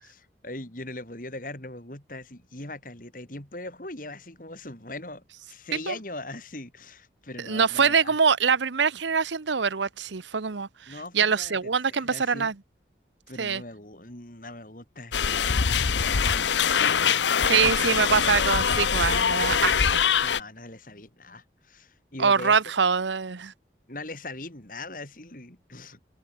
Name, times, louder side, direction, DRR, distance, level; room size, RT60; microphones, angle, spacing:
voice 1, 0.0-8.2 10.9-12.5 13.3-16.6 17.7-17.8 20.2-22.6 23.9-26.0, left 2 dB, 45° left, 4.0 m, -40 dB
voice 2, 7.4-12.5 13.4-13.6 17.4-20.0 22.2-23.5, right 6 dB, 85° right, 0.9 m, -24 dB
sound 1, 15.1-20.4, left 7 dB, 80° left, 0.8 m, -23 dB
open air
head